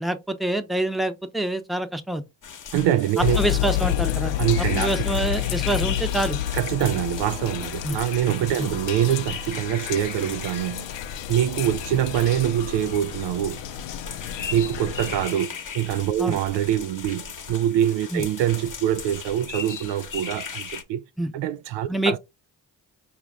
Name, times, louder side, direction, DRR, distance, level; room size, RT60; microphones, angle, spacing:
voice 1, 0.0-2.2 3.4-4.3 4.7-6.4 7.8-8.0 8.6-8.7 16.2-16.4 18.1-18.2 21.2-21.3 21.9-22.2, right 1 dB, ahead, 0.8 m, -26 dB
sound 1, 2.4-20.8, left 6 dB, 40° left, 1.1 m, -38 dB
voice 2, 2.7-3.4 4.4-4.9 6.5-10.9 11.3-13.6 14.5-21.0 21.3-22.2, right 11 dB, 60° right, 0.5 m, -24 dB
sound 2, 3.2-15.3, left 12 dB, 60° left, 0.6 m, -29 dB
4.9 x 2.5 x 3.6 m
hypercardioid pair, 45°, 50 cm